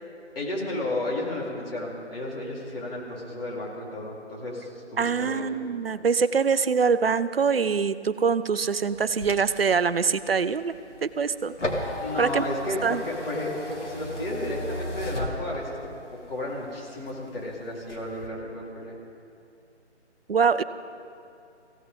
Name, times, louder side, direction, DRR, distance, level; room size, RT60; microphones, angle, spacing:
voice 1, 0.4-5.5 12.0-15.8 16.3-19.0, left 1 dB, 55° left, -4 dB, 4.0 m, -33 dB
voice 2, 5.0-10.7 11.0-11.5 12.2-12.4 12.8-13.0 20.3-20.6, right 5 dB, 55° right, 14 dB, 0.6 m, -24 dB
sound 1, 8.9-16.0 16.4-17.4 17.8-18.3, left 1 dB, 90° left, 2.3 m, -35 dB
23.0 x 16.5 x 3.7 m, 2.5 s
figure-of-eight pair, 155°, 35 cm